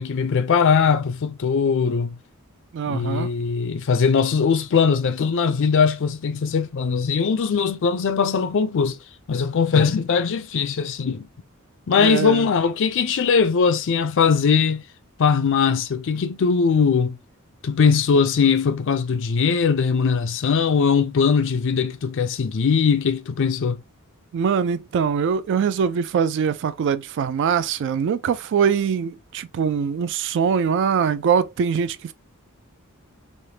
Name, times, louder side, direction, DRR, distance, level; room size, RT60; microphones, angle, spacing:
voice 1, 0.0-2.2 2.9-9.0 9.3-11.3 11.9-14.8 15.2-17.2 17.6-23.8, left 6 dB, 60° left, 0.4 m, -20 dB
voice 2, 2.7-3.3 12.0-12.5 24.3-32.1, right 7 dB, 60° right, 0.3 m, -22 dB
3.3 x 2.1 x 2.7 m
head